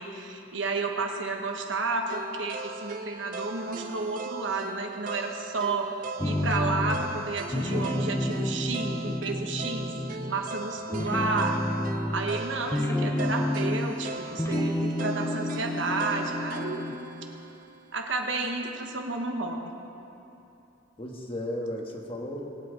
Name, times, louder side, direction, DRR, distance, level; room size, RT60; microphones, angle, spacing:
voice 1, 0.0-5.9 6.2-10.0 10.3-11.6 12.1-16.8 17.9-19.6, right 3 dB, 70° right, 2 dB, 1.2 m, -31 dB
sound 1, 2.1-18.2, right 3 dB, 45° right, 0.5 m, -40 dB
sound 2, 6.2-7.2 7.5-10.5 10.9-14.0 14.3-17.0, left 1 dB, 15° left, 0.6 m, -30 dB
voice 2, 11.0-11.3 21.0-22.4, left 1 dB, 30° left, 0 dB, 1.4 m, -35 dB
21.0 x 8.8 x 3.9 m, 2.9 s
head